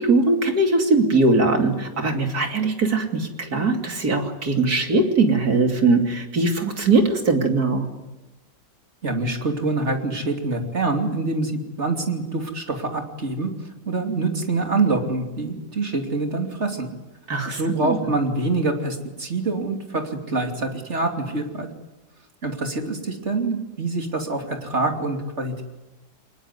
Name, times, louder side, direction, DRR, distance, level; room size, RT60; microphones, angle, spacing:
voice 1, 0.0-7.8 17.3-18.0, right 3 dB, 55° right, 4 dB, 3.3 m, -20 dB
voice 2, 9.0-16.9 17.5-21.7 22.4-25.6, right 3 dB, 40° right, 4 dB, 3.2 m, -25 dB
23.5 x 20.5 x 9.6 m, 1.0 s
omnidirectional pair, 1.9 m